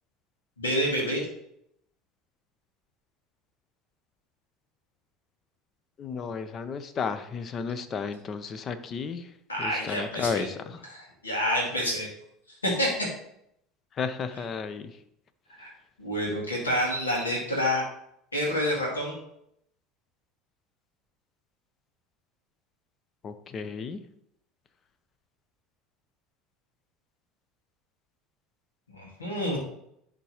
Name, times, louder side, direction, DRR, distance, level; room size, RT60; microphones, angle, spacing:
voice 1, 0.6-1.3 9.5-10.5 10.9-12.1 12.6-13.1 15.6-15.7 16.0-17.8 18.3-19.1 28.9-29.6, equal, 90° left, -3 dB, 2.0 m, -28 dB
voice 2, 6.0-9.3 9.6-10.8 13.9-15.0 23.2-24.0, left 5 dB, 40° left, 11 dB, 0.7 m, -33 dB
10.5 x 3.7 x 3.0 m, 0.73 s
hypercardioid pair, 70°, 0 cm